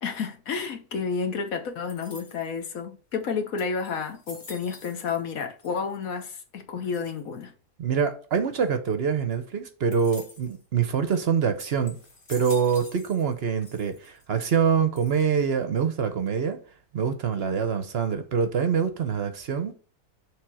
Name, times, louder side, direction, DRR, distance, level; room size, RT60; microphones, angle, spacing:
voice 1, 0.0-7.5, left 5 dB, 65° left, 1.4 m, -31 dB
sound 1, 1.9-2.6 3.2-3.3 3.6-5.3 5.6-6.2 6.9-7.4 9.9-10.6 11.1-11.2 11.6-13.4 13.6-14.2 15.0-15.5, left 2 dB, 35° left, 1.6 m, -47 dB
voice 2, 7.8-12.0 12.3-16.6 16.9-19.7, right 6 dB, 55° right, 0.8 m, -25 dB
6.3 x 3.4 x 6.0 m
omnidirectional pair, 1.6 m